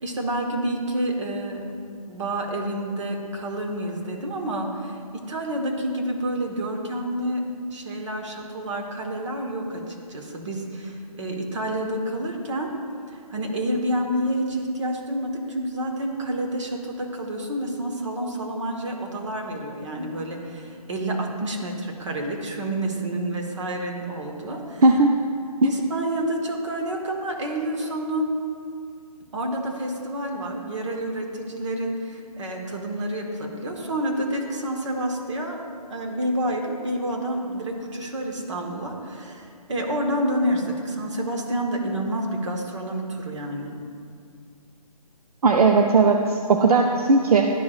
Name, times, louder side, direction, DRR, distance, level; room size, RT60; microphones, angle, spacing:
voice 1, 0.0-1.6 2.1-7.4 7.7-12.7 13.1-24.8 25.6-28.3 29.3-35.6 35.9-43.7, right 1 dB, 50° right, 1 dB, 1.2 m, -29 dB
voice 2, 24.8-25.1 25.6-25.7 45.4-47.5, right 3 dB, 75° right, 3 dB, 0.5 m, -17 dB
11.5 x 4.7 x 2.4 m, 2.2 s
hypercardioid pair, 165°, 20 cm